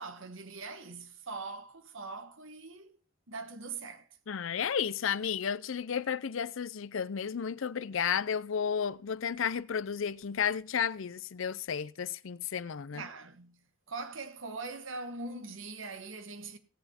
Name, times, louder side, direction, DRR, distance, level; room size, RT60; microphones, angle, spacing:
voice 1, 0.0-2.9 3.3-4.1 12.9-13.6 13.9-16.6, right 3 dB, 75° right, 1.2 m, -42 dB
voice 2, 4.3-13.0, left 7 dB, 75° left, 0.5 m, -32 dB
17.5 x 7.9 x 4.3 m
head